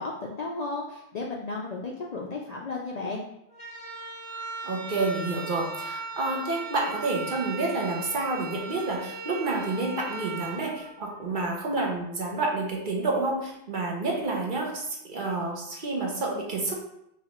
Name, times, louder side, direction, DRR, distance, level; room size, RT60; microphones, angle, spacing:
voice 1, 0.0-3.2, left 3 dB, 55° left, -2 dB, 0.5 m, -34 dB
sound 1, 3.5-11.6, right 3 dB, 20° left, 1.7 m, -38 dB
voice 2, 4.6-16.7, right 3 dB, 50° right, -1 dB, 0.9 m, -29 dB
5.8 x 2.4 x 3.0 m, 0.79 s
omnidirectional pair, 1.1 m